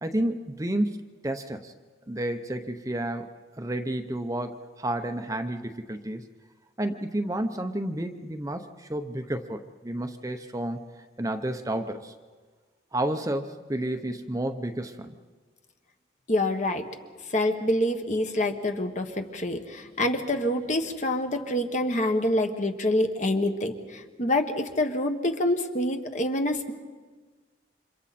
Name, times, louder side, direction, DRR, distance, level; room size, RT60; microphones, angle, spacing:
voice 1, 0.0-1.7 2.1-3.3 3.6-6.3 6.8-10.8 11.2-12.1 12.9-15.1, right 1 dB, 20° right, 6 dB, 0.8 m, -31 dB
voice 2, 16.3-16.8 17.3-26.7, left 1 dB, 40° left, 5 dB, 1.4 m, -26 dB
29.5 x 26.5 x 4.3 m, 1.4 s
head